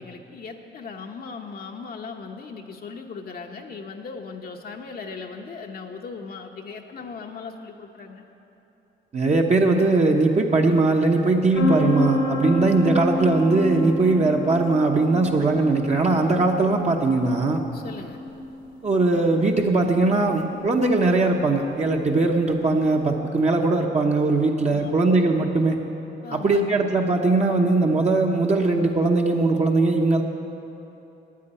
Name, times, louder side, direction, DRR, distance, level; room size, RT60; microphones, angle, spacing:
voice 1, 0.0-8.3 17.7-18.2 24.7-25.1 26.2-26.8, left 5 dB, 50° left, 2 dB, 0.8 m, -38 dB
voice 2, 9.1-17.6 18.8-25.8 26.3-30.2, right 3 dB, 35° right, 1 dB, 0.9 m, -20 dB
sound 1, 11.5-23.0, left 1 dB, 85° left, 1.9 m, -30 dB
9.1 x 8.5 x 8.9 m, 3.0 s
cardioid pair, 90°, 20 cm